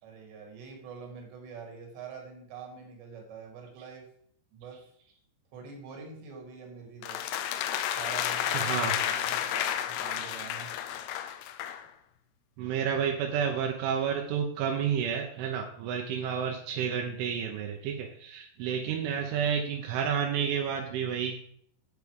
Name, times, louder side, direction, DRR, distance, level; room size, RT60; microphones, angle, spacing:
voice 1, 0.0-4.0 4.5-4.8 5.5-7.2 8.0-10.7, right 5 dB, 70° right, 2 dB, 4.1 m, -45 dB
sound 1, 7.0-11.9, left 10 dB, 90° left, 2.3 m, -31 dB
voice 2, 8.5-8.9 12.6-21.3, right 7 dB, 90° right, 2 dB, 3.4 m, -30 dB
8.4 x 7.1 x 4.8 m, 0.65 s
omnidirectional pair, 5.4 m